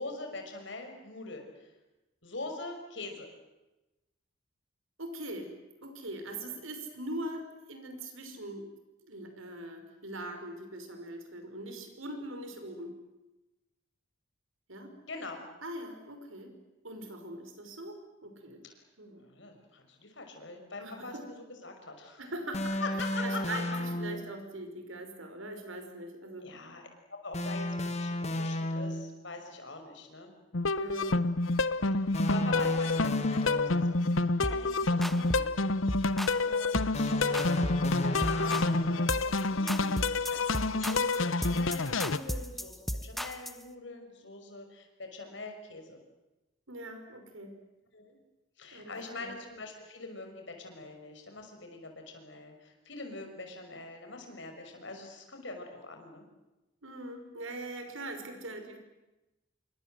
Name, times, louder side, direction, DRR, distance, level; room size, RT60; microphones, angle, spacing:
voice 1, 0.0-1.7 2.2-3.3 15.1-15.4 18.6-18.8 19.2-22.2 22.8-23.6 26.4-30.3 31.9-35.5 35.9-40.0 40.3-46.0 47.9-48.2 48.6-56.2, left 3 dB, 65° left, 4 dB, 5.9 m, -43 dB
voice 2, 5.0-5.6 5.8-8.7 9.0-12.9 14.7-14.9 15.6-16.6 16.8-18.6 19.0-19.2 20.8-21.2 22.2-22.8 23.2-26.5 30.8-31.2 46.7-47.6 48.7-49.3 56.8-58.8, right 1 dB, 85° right, 6 dB, 5.8 m, -41 dB
sound 1, 22.5-24.4 27.3-29.2 32.1-34.1 36.9-39.1, left 1 dB, 35° left, 2.0 m, -34 dB
sound 2, 30.5-42.2, left 3 dB, 80° left, 1.0 m, -28 dB
sound 3, 34.4-34.7 35.0-35.5 35.9-36.4 36.8-37.0 37.3-37.9 38.2-38.7 39.1-39.4 39.7-43.6, equal, ahead, 0.8 m, -36 dB
28.0 x 24.5 x 7.9 m, 1.0 s
head